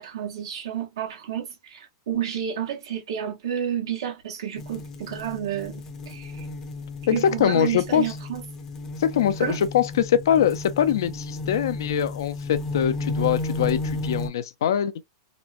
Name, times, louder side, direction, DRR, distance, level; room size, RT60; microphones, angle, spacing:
voice 1, 0.0-6.5 7.1-8.4 9.4-9.6, right 9 dB, 90° right, 0.9 m, -30 dB
sound 1, 4.6-14.3, left 2 dB, 20° left, 0.5 m, -33 dB
voice 2, 7.1-8.0 9.0-14.9, left 9 dB, 80° left, 0.4 m, -23 dB
3.0 x 2.1 x 2.4 m
supercardioid pair, 155°, 2 cm